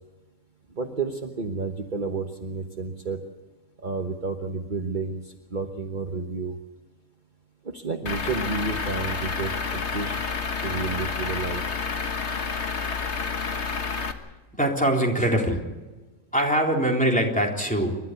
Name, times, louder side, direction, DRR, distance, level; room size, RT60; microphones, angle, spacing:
voice 1, 0.7-3.2 3.8-6.6 7.6-10.2 10.6-11.6, right 4 dB, 40° right, 4 dB, 1.3 m, -31 dB
Truck / Idling, 8.1-14.1, left 5 dB, 60° left, 1.7 m, -29 dB
voice 2, 14.5-15.6 16.3-18.0, right 1 dB, 5° left, -1 dB, 3.8 m, -23 dB
28.5 x 13.0 x 8.2 m, 1.2 s
omnidirectional pair, 1.4 m